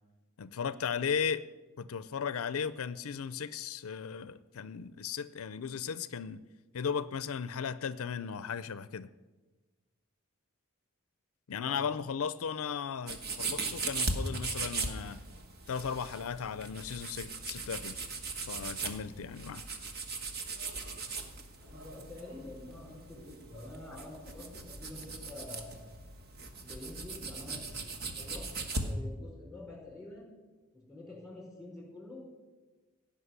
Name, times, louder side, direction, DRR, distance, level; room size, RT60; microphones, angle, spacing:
voice 1, 0.4-1.5 1.8-6.4 6.7-9.1 11.5-15.2 15.7-18.1 18.5-19.6, left 6 dB, 75° left, 15 dB, 0.5 m, -36 dB
voice 2, 11.5-11.8 21.6-25.8 26.6-27.6 28.0-28.5 28.8-30.3 30.7-32.2, left 2 dB, ahead, -2 dB, 4.9 m, -47 dB
sound 1, 13.1-28.9, right 3 dB, 45° right, 1.4 m, -39 dB
17.0 x 5.9 x 9.6 m, 1.3 s
head